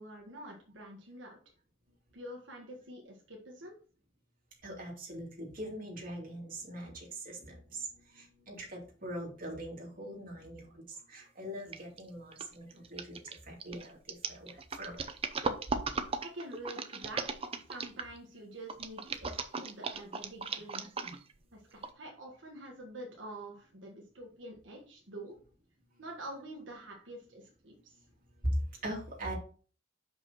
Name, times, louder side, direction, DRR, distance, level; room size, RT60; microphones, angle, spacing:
voice 1, 0.0-1.4 2.1-3.7 16.2-20.8 21.5-25.4 26.0-28.0, right 1 dB, 80° right, -1 dB, 1.4 m, -47 dB
voice 2, 4.6-15.0 26.0-26.1 28.4-29.3, right 1 dB, 50° right, -2 dB, 2.6 m, -41 dB
sound 1, 11.7-12.0 12.3-18.2 18.7-21.4 21.8-21.9, right 4 dB, 30° right, 0.6 m, -37 dB
6.1 x 5.4 x 4.2 m, 0.40 s
head